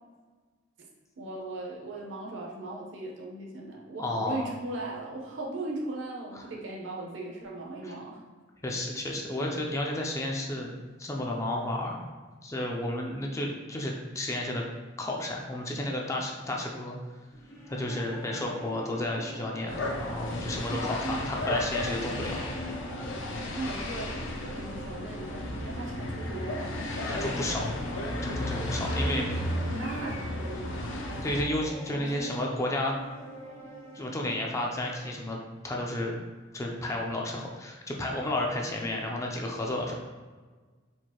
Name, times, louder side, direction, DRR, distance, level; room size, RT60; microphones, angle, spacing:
voice 1, 1.2-8.2 20.7-21.3 23.5-26.8 28.9-31.1 31.9-32.4, right 2 dB, 65° right, -2 dB, 0.8 m, -38 dB
voice 2, 4.0-4.5 7.8-7.9 8.6-10.7 11.0-12.1 12.4-14.6 15.0-17.0 17.7-22.5 26.9-27.6 28.2-29.2 31.2-32.9 33.9-35.4 35.6-36.1 36.5-40.0, left 1 dB, 15° left, -1 dB, 0.4 m, -32 dB
sound 1, 17.3-35.0, right 1 dB, 85° left, 1.0 m, -45 dB
sound 2, 19.7-31.4, left 1 dB, 70° left, 0.6 m, -34 dB
4.5 x 2.5 x 2.8 m, 1.4 s
head